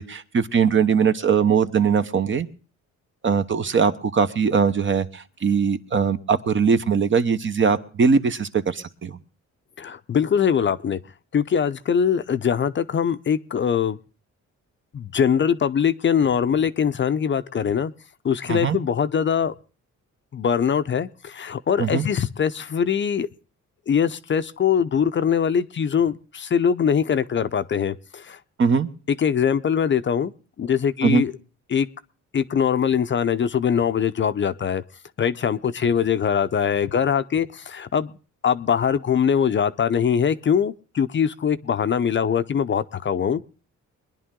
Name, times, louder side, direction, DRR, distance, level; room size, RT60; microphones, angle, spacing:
voice 1, 0.0-2.5 3.2-9.2 18.5-18.8 21.8-22.1 28.6-28.9 31.0-31.2, right 6 dB, 40° right, 10 dB, 1.0 m, -21 dB
voice 2, 9.8-11.0 11.3-14.0 14.9-17.9 18.2-19.5 20.3-23.3 23.9-28.4 29.2-30.3 30.6-31.3 31.7-31.9 32.3-34.8 35.2-38.1 38.4-43.4, left 7 dB, 40° left, 12 dB, 0.6 m, -22 dB
21.5 x 10.5 x 3.7 m, 0.37 s
cardioid pair, 90°, 30 cm